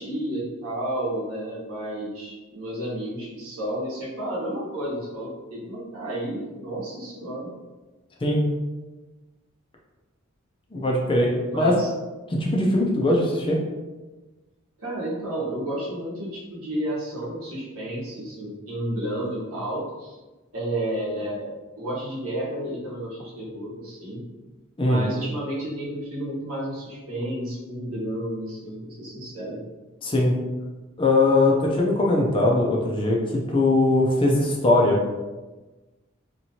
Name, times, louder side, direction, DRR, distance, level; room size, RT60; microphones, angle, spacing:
voice 1, 0.0-7.5 11.5-11.9 14.8-20.2 20.5-21.5 21.7-24.2 24.8-29.6, right 1 dB, 85° right, -5 dB, 1.0 m, -31 dB
voice 2, 10.7-11.7 12.3-13.6 24.8-25.1 30.0-30.3 31.0-33.2 33.5-35.0, left 2 dB, 25° left, -2 dB, 0.4 m, -20 dB
2.9 x 2.6 x 2.7 m, 1.2 s
head